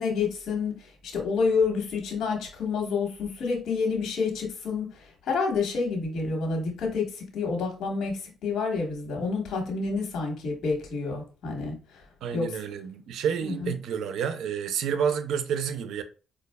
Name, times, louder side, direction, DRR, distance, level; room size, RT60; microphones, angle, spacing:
voice 1, 0.0-11.7 12.3-12.6 13.4-13.7, left 4 dB, 75° left, 1.2 m, -29 dB
voice 2, 12.2-16.0, right 7 dB, 80° right, 0.4 m, -29 dB
4.9 x 2.3 x 2.2 m
cardioid pair, 90°, 0 cm